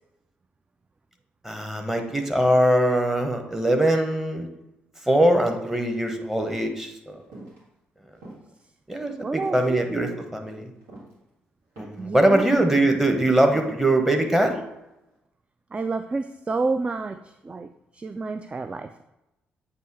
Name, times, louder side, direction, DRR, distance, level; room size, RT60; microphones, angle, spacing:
voice 1, 1.4-4.5 5.1-7.2 8.9-10.7 11.8-14.5, right 1 dB, 5° right, 4 dB, 1.1 m, -22 dB
sound 1, 7.3-7.6 8.2-8.6 9.0-9.2 10.0-10.3 10.7-11.2 11.8-12.1 12.5-12.8 13.5-13.8 14.4-14.8 15.1-15.2, right 2 dB, 75° right, 1.8 m, -42 dB
voice 2, 9.2-10.0 12.0-12.5 15.7-17.2 17.4-19.0, right 3 dB, 25° right, 9 dB, 0.3 m, -29 dB
8.0 x 2.8 x 4.6 m, 0.91 s
figure-of-eight pair, 40°, 5 cm